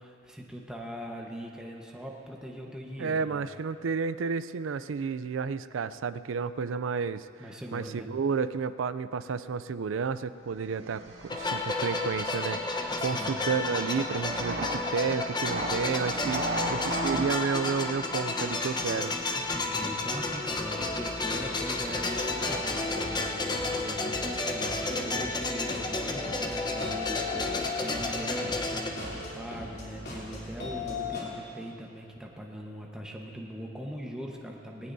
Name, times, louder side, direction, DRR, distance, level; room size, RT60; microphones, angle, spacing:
voice 1, 0.0-3.5 7.4-8.1 12.9-13.3 16.3-16.7 18.7-18.9 19.3-34.9, equal, 5° right, -1 dB, 1.2 m, -41 dB
voice 2, 3.0-7.3 7.7-16.4 16.7-19.1, right 5 dB, 85° right, 14 dB, 0.4 m, -31 dB
sound 1, 10.6-24.5, right 1 dB, 65° right, 2.0 m, -39 dB
sound 2, 11.3-28.9, left 2 dB, 25° left, 0.9 m, -32 dB
sound 3, 20.5-31.2, left 3 dB, 55° left, 3.5 m, -38 dB
19.5 x 18.5 x 2.7 m, 2.9 s
head